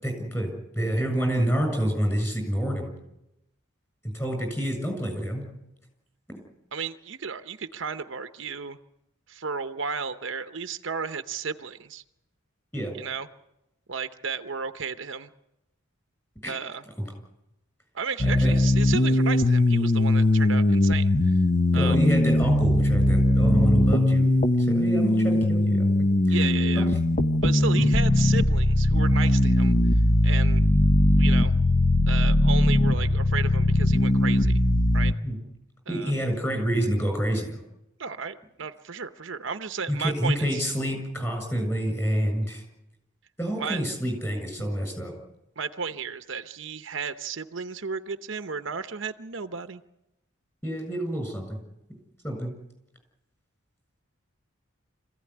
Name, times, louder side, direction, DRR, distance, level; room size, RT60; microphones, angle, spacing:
voice 1, 0.0-2.9 4.0-5.5 6.3-6.4 12.7-12.9 16.4-16.5 18.2-18.5 21.7-24.3 24.6-25.9 26.3-26.4 26.8-26.9 27.7-27.9 35.2-35.4 35.9-37.6 39.9-42.6 43.4-45.2 50.6-51.6 52.2-52.5, equal, 15° left, 4 dB, 6.9 m, -27 dB
voice 2, 6.7-8.8 9.3-12.0 12.9-13.3 13.9-15.3 16.5-16.8 17.9-21.4 21.7-22.0 26.3-26.9 27.4-29.8 30.2-30.6 31.1-31.5 32.1-34.6 34.9-35.1 35.9-36.1 38.0-40.6 43.6-43.8 44.6-44.7 45.6-49.8, right 6 dB, 65° right, 10 dB, 0.8 m, -33 dB
sound 1, 18.2-35.1, left 1 dB, 40° left, 1.0 m, -20 dB
26.0 x 15.5 x 9.9 m, 0.90 s
head